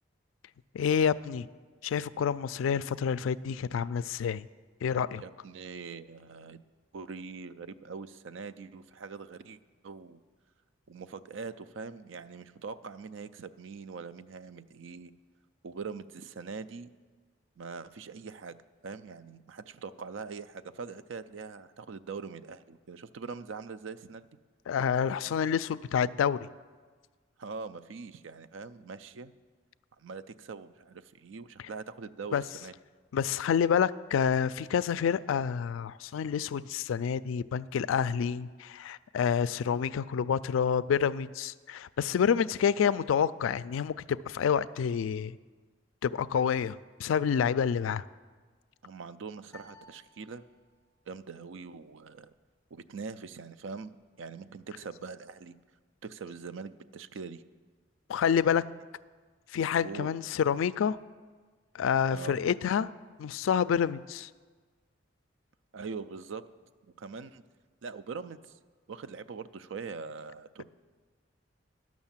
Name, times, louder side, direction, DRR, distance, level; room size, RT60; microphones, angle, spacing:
voice 1, 0.7-1.5 1.8-4.5 4.8-5.2 24.7-26.4 32.3-32.4 33.1-45.4 46.0-48.0 58.1-58.6 59.5-61.0 61.7-62.9 63.2-64.3, left 7 dB, 85° left, 18 dB, 0.3 m, -28 dB
voice 2, 5.2-6.6 6.9-10.2 10.9-15.1 15.6-16.9 17.6-18.5 18.8-24.3 27.4-29.3 30.0-32.7 48.8-50.4 51.1-52.3 52.7-55.5 56.0-57.4 58.4-58.6 59.8-60.1 62.1-62.4 65.7-66.4 67.0-67.4 67.8-68.5 68.9-70.6, right 5 dB, 75° right, 13 dB, 0.4 m, -42 dB
sound 1, 49.5-51.0, left 2 dB, 15° left, 1.0 m, -56 dB
11.5 x 6.2 x 7.3 m, 1.5 s
head